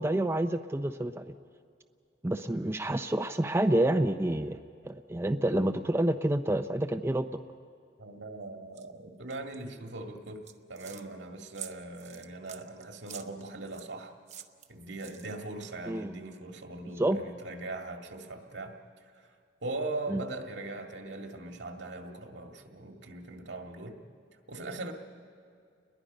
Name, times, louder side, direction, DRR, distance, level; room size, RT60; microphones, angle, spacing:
voice 1, 0.0-1.3 2.2-7.3 15.9-16.1 17.0-17.2 20.1-20.2, right 1 dB, 15° right, 7 dB, 0.5 m, -28 dB
voice 2, 8.0-14.1 14.7-18.8 19.6-24.0 24.5-24.9, right 2 dB, 80° right, 3 dB, 2.0 m, -40 dB
sound 1, 8.7-8.8 9.3-9.6 10.2-11.0 11.5-13.9 14.3-15.5, right 9 dB, 40° right, 0.8 m, -47 dB
30.0 x 21.5 x 5.3 m, 2.4 s
head